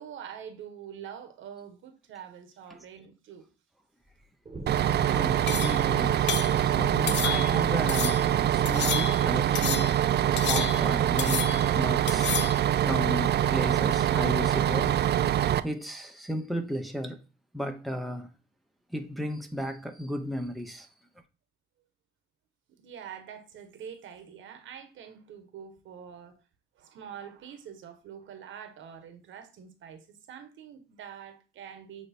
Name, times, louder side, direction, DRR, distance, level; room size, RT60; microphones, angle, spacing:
voice 1, 0.0-3.5 22.7-26.4 26.7-32.1, right 8 dB, 75° right, 1.3 m, -45 dB
sound 1, 4.5-8.7, right 2 dB, 25° right, 1.4 m, -42 dB
Bus, 4.7-15.6, right 11 dB, 55° right, 0.5 m, -24 dB
voice 2, 5.0-8.2 8.5-9.9 10.3-12.3 12.8-15.0 15.6-17.2 17.5-18.3 18.9-20.9, equal, ahead, 1.0 m, -34 dB
sound 2, 5.5-5.9 6.3-6.6 7.1-7.6 7.9-8.3 8.6-9.3 9.5-10.0 10.4-10.9 11.2-11.7 12.1-12.6, left 9 dB, 60° left, 0.7 m, -31 dB
8.5 x 3.2 x 4.4 m
cardioid pair, 90°, 20 cm